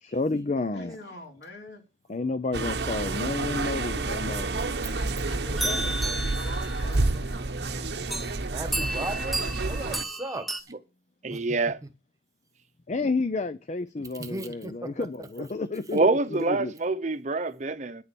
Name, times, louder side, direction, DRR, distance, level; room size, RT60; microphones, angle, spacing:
voice 1, 0.0-1.0 2.1-4.5 5.6-6.0 12.9-16.7, left 3 dB, 40° left, 0.5 m, -31 dB
voice 2, 0.7-1.8 4.5-7.2, left 1 dB, 80° left, 3.3 m, -44 dB
sound 1, 2.5-10.0, right 3 dB, 70° right, 0.9 m, -29 dB
sound 2, 5.6-7.2 8.1-8.4 8.7-10.6, right 1 dB, ahead, 0.8 m, -32 dB
voice 3, 8.4-10.7 11.3-11.4 14.2-15.1 15.4-15.5, right 2 dB, 20° right, 1.2 m, -37 dB
voice 4, 11.2-11.8 15.9-18.0, right 3 dB, 45° right, 0.8 m, -26 dB
9.5 x 7.0 x 7.0 m
head